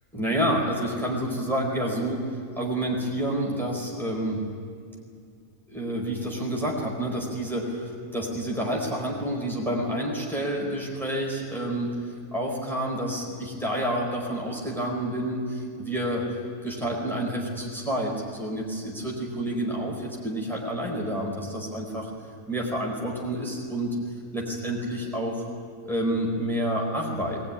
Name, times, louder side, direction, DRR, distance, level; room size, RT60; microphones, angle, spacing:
voice 1, 0.1-4.4 5.7-16.3 16.6-22.1 22.5-24.0 24.3-25.5 25.8-27.4, right 1 dB, ahead, -2 dB, 4.5 m, -29 dB
21.5 x 20.5 x 9.9 m, 2.3 s
omnidirectional pair, 1.5 m